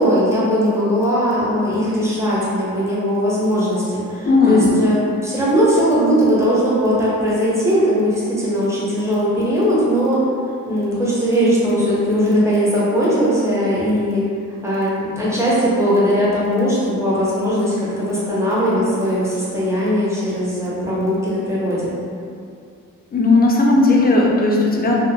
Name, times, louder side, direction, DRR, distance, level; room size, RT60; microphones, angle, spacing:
voice 1, 0.0-10.3 10.7-14.3 14.6-21.9, equal, 10° right, -8 dB, 0.7 m, -19 dB
voice 2, 4.2-4.9 23.1-25.0, left 2 dB, 30° left, -2 dB, 0.4 m, -15 dB
2.7 x 2.1 x 2.7 m, 2.4 s
wide cardioid pair, 90°, 34 cm